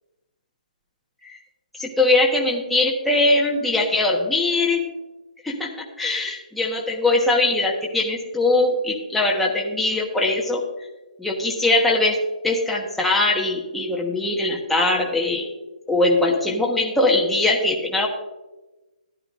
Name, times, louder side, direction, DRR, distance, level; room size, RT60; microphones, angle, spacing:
voice 1, 1.8-4.8 5.4-10.6 11.2-12.2 12.4-15.5 15.9-18.1, left 2 dB, ahead, -3 dB, 1.2 m, -21 dB
14.5 x 11.0 x 2.5 m, 1.1 s
hypercardioid pair, 150°, 5 cm